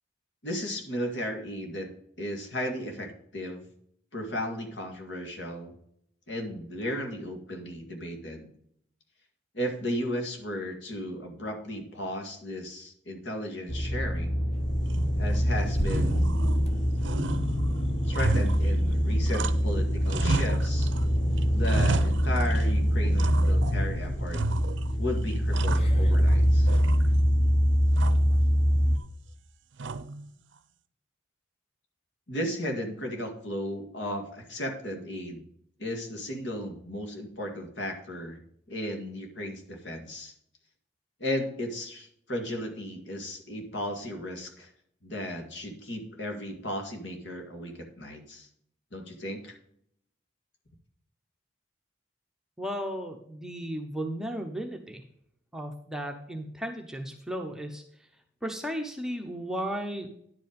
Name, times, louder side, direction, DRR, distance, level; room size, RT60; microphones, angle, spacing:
voice 1, 0.4-1.9 2.2-3.6 4.1-5.7 6.3-8.5 9.5-14.4 15.2-16.4 18.1-20.9 21.5-24.4 25.0-26.7 32.3-35.4 35.8-38.4 38.7-40.3 41.2-44.7 45.0-48.5 48.9-49.5, left 1 dB, 65° left, 3 dB, 1.9 m, -35 dB
sound 1, 13.7-29.0, equal, 30° left, 0.9 m, -24 dB
sound 2, 14.9-15.4 15.8-16.7 17.0-19.8 20.0-21.0 21.4-22.7 23.2-23.8 24.3-25.0 25.3-26.4 26.7-27.4 27.9-28.4 29.8-30.3, right 3 dB, 70° right, 0.5 m, -33 dB
voice 2, 52.6-55.0 55.5-57.8 58.4-60.1, equal, 5° right, 3 dB, 0.8 m, -35 dB
10.5 x 5.2 x 5.2 m, 0.69 s
head